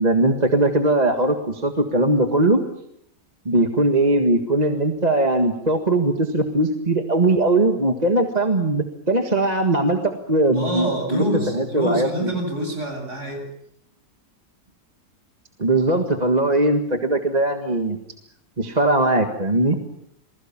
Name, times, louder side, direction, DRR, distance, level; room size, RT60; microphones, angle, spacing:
voice 1, 0.0-2.6 3.5-11.2 11.5-12.1 15.6-18.0 18.6-19.8, right 2 dB, 25° right, 5 dB, 1.7 m, -20 dB
voice 2, 10.5-13.5, right 1 dB, 40° right, 3 dB, 8.0 m, -26 dB
28.5 x 20.5 x 7.3 m, 0.72 s
omnidirectional pair, 1.8 m